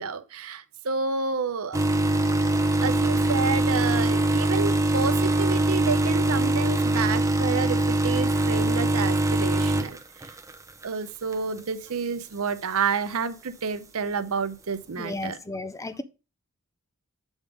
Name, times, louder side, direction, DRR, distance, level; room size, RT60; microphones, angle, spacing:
voice 1, 0.0-1.8 2.8-10.3 10.8-15.4, right 5 dB, 65° right, 0.7 m, -29 dB
sound 1, 1.7-10.9 11.3-11.6 12.5-12.6, right 2 dB, 15° right, 0.8 m, -23 dB
voice 2, 15.0-16.0, left 2 dB, 15° left, 0.4 m, -34 dB
7.2 x 3.6 x 5.0 m
head